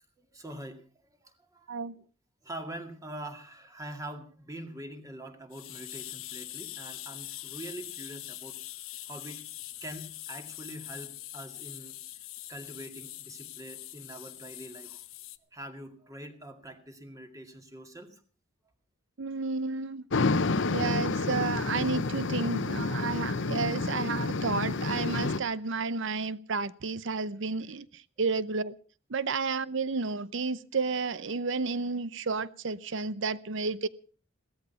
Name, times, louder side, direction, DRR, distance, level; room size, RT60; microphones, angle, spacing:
voice 1, 0.2-0.9 1.2-1.8 2.4-8.6 9.1-12.0 12.5-15.0 15.5-18.2, right 1 dB, 15° right, 2.2 m, -44 dB
sound 1, 5.5-15.4, left 15 dB, 85° left, 1.1 m, -43 dB
voice 2, 19.2-20.0 20.7-28.8 29.1-33.9, right 4 dB, 65° right, 0.8 m, -31 dB
sound 2, 20.1-25.4, left 3 dB, 65° left, 0.8 m, -29 dB
17.0 x 13.5 x 5.7 m
head